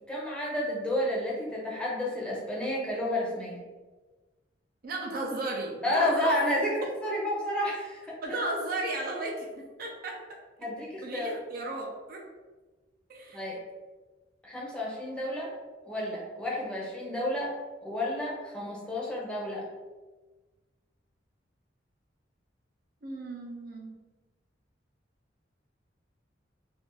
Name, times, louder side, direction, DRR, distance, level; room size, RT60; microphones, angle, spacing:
voice 1, 0.1-3.6 5.8-8.4 10.6-11.4 13.3-13.6 14.4-15.5 15.8-17.5 17.8-19.6, left 1 dB, 5° left, -5 dB, 0.6 m, -31 dB
voice 2, 4.8-6.4 8.2-10.4 11.0-12.2 13.1-13.6 23.0-24.0, right 2 dB, 50° right, 0 dB, 0.4 m, -35 dB
2.5 x 2.3 x 3.7 m, 1.2 s
head